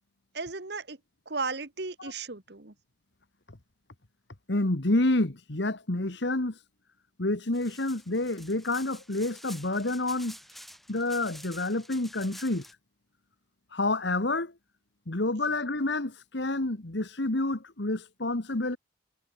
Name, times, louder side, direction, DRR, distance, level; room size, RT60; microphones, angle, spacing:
voice 1, 0.3-1.0 1.3-2.7, right 4 dB, 55° right, 1.4 m, -35 dB
voice 2, 4.5-6.5 7.2-10.4 10.9-12.6 13.7-14.5 15.1-18.8, left 2 dB, 65° left, 1.6 m, -28 dB
sound 1, 7.5-12.7, equal, ahead, 2.9 m, -49 dB
head